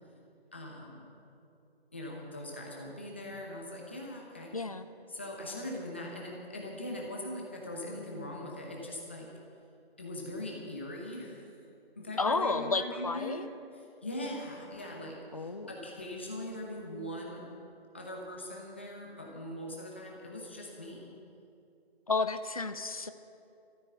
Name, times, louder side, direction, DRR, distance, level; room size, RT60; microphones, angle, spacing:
voice 1, 0.5-1.1 1.9-4.5 5.1-9.3 10.0-11.4 12.0-13.5 13.7-17.4 17.9-21.1, left 1 dB, 10° left, -1 dB, 0.9 m, -41 dB
voice 2, 4.5-4.9 12.2-13.5 15.3-15.7 22.1-23.1, left 3 dB, 35° left, 10 dB, 0.6 m, -31 dB
13.5 x 13.0 x 7.7 m, 2.7 s
figure-of-eight pair, 170°, 31 cm